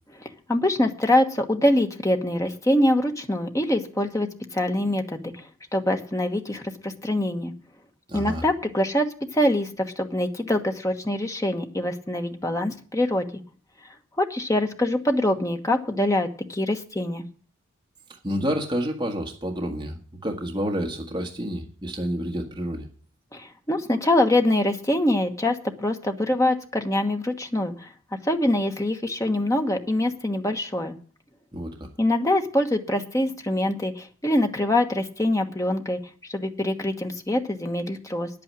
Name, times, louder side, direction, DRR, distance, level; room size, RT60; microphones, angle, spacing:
voice 1, 0.2-5.4 5.7-7.5 8.1-9.1 9.3-13.3 14.2-17.2 23.3-27.9 28.2-30.9 32.0-38.3, left 1 dB, 15° left, 5 dB, 1.2 m, -24 dB
voice 2, 8.1-8.4 18.1-22.9 31.5-31.9, equal, 20° right, 1 dB, 1.5 m, -29 dB
9.9 x 8.7 x 7.5 m, 0.43 s
head